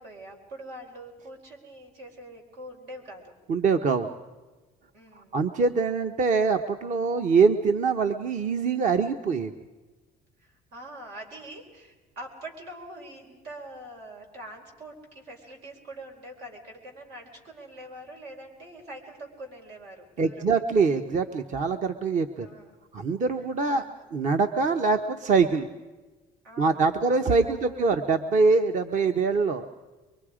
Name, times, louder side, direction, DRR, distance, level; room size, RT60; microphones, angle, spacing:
voice 1, 0.0-3.3 4.9-5.4 10.4-20.6 22.4-22.8 23.7-24.0 26.4-27.8, right 1 dB, 85° right, 2 dB, 4.4 m, -44 dB
voice 2, 3.5-4.1 5.2-9.5 20.2-22.5 22.9-25.7 26.6-29.6, right 4 dB, 50° right, 7 dB, 0.9 m, -24 dB
24.5 x 23.0 x 5.0 m, 1.2 s
cardioid pair, 110°, 17 cm